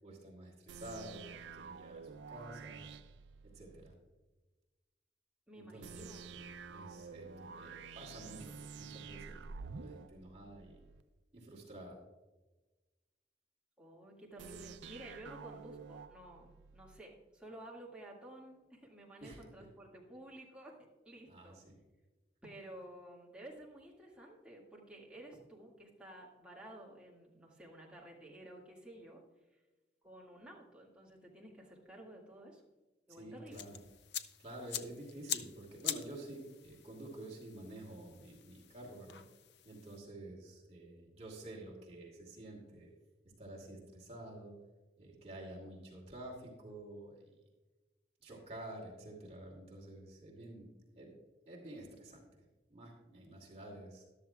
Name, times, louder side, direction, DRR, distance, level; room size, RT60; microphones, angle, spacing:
voice 1, 0.0-2.9 3.4-3.9 5.5-10.8 11.3-12.0 19.2-19.4 21.3-21.8 33.1-33.8 34.4-39.2 39.6-42.9 43.4-44.6 45.0-47.3 48.2-51.1 51.5-52.4 52.7-54.0, right 1 dB, 35° right, -2 dB, 2.5 m, -50 dB
sound 1, 0.7-4.0 5.8-11.0 14.4-17.0, right 5 dB, 90° right, 0.4 m, -50 dB
voice 2, 5.5-6.2 13.8-21.6 22.4-29.2 30.0-32.6 33.1-33.6, right 1 dB, 5° right, -4 dB, 1.9 m, -53 dB
sound 2, 33.5-40.0, left 10 dB, 75° left, 0.6 m, -45 dB
13.5 x 12.0 x 2.3 m, 1.2 s
head